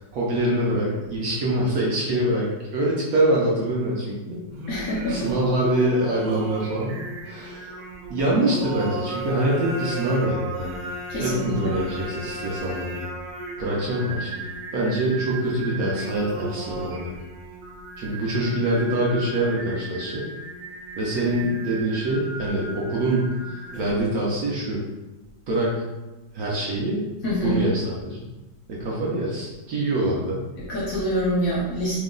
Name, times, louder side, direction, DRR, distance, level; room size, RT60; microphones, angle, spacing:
voice 1, 0.1-4.4 5.1-7.8 8.1-10.8 11.2-13.1 13.6-17.1 18.0-20.3 21.0-24.8 25.5-25.8 26.3-27.0 27.4-28.3 28.7-30.4, right 1 dB, 65° right, -4 dB, 0.9 m, -25 dB
Singing, 4.5-24.1, right 3 dB, 85° right, 1.4 m, -36 dB
voice 2, 4.7-5.3 11.1-11.7 27.2-27.6 30.6-32.0, equal, 65° left, -5 dB, 0.9 m, -26 dB
3.0 x 2.2 x 3.6 m, 1.1 s
omnidirectional pair, 2.0 m